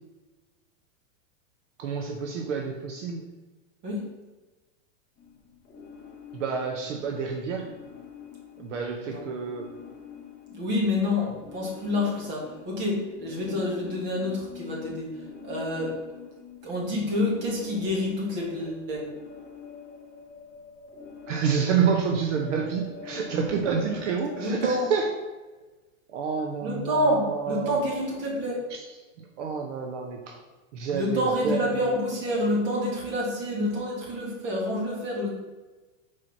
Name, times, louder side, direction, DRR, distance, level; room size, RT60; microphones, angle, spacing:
voice 1, 1.8-3.2 6.3-7.7 8.6-9.7 21.3-25.1 26.1-27.8 28.7-28.8 29.2-30.4 30.7-32.0, right 6 dB, 60° right, 2 dB, 0.9 m, -28 dB
sound 1, 5.2-24.8, left 6 dB, 20° left, 0.8 m, -45 dB
voice 2, 10.5-15.1 15.4-16.0 16.6-19.1 24.4-24.9 26.6-28.6 30.9-35.3, left 1 dB, 25° right, -3 dB, 1.8 m, -28 dB
4.8 x 4.2 x 5.8 m, 1.2 s
supercardioid pair, 170°, 40 cm